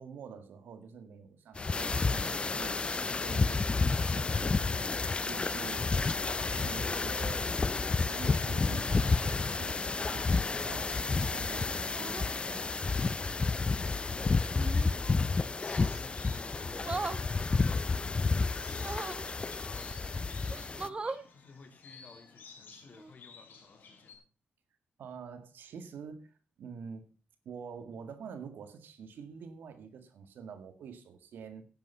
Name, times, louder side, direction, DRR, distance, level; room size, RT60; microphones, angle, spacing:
voice 1, 0.0-5.9 6.3-7.5 7.8-12.7 25.0-27.1 27.5-31.6, right 6 dB, 80° right, 1.9 m, -47 dB
sound 1, 1.6-20.9, left 4 dB, 30° left, 0.5 m, -30 dB
sound 2, 10.7-10.8 11.9-12.3 14.5-15.0 16.8-17.2 18.7-19.3 20.0-20.1 20.5-21.3 22.9-23.1, right 3 dB, 30° right, 1.2 m, -39 dB
voice 2, 13.8-16.8 17.2-18.0 18.4-19.2 20.1-21.0 21.3-24.2, left 4 dB, 50° left, 2.9 m, -56 dB
sound 3, 15.3-24.2, left 5 dB, 75° left, 4.4 m, -55 dB
10.5 x 9.4 x 5.5 m
cardioid pair, 65°, 3 cm